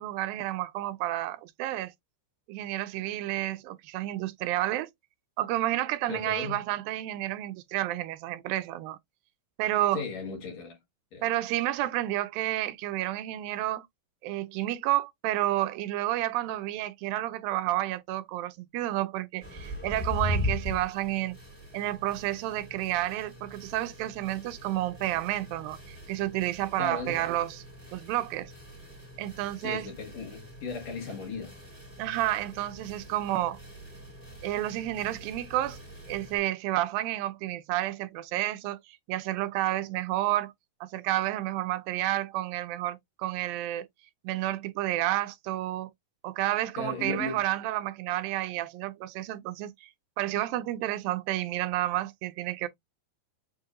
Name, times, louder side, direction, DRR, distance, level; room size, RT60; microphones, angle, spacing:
voice 1, 0.0-1.9 2.5-4.9 5.4-9.0 9.6-10.0 11.2-13.9 14.2-21.4 21.7-27.6 27.9-28.5 29.2-29.9 32.0-33.6 34.4-35.8 36.1-40.5 40.8-43.9 44.2-45.9 46.2-49.9 50.2-52.7, right 15 dB, 85° right, 2.4 m, -30 dB
voice 2, 6.1-6.6 9.9-10.8 11.1-11.2 26.8-27.2 29.6-31.6 46.8-47.4, left 4 dB, 60° left, 2.4 m, -36 dB
sound 1, 19.4-36.4, left 1 dB, 5° left, 1.5 m, -40 dB
7.2 x 2.7 x 2.4 m
omnidirectional pair, 4.0 m